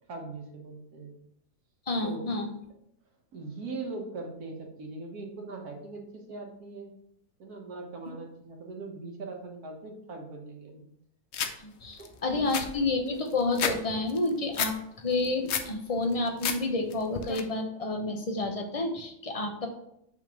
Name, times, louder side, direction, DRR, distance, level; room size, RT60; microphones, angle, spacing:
voice 1, 0.1-1.1 2.0-2.2 3.3-6.9 7.4-10.9 12.0-12.4, right 3 dB, 70° right, 2 dB, 1.7 m, -40 dB
voice 2, 1.9-2.5 11.6-19.7, left 2 dB, 30° left, 3 dB, 0.8 m, -30 dB
sound 1, 11.3-11.5 12.0-12.1 12.3-13.8 14.1-14.7 15.1-15.7 16.1-16.6 16.9-17.4, left 7 dB, 60° left, 0.8 m, -31 dB
5.9 x 3.6 x 6.0 m, 0.75 s
omnidirectional pair, 1.7 m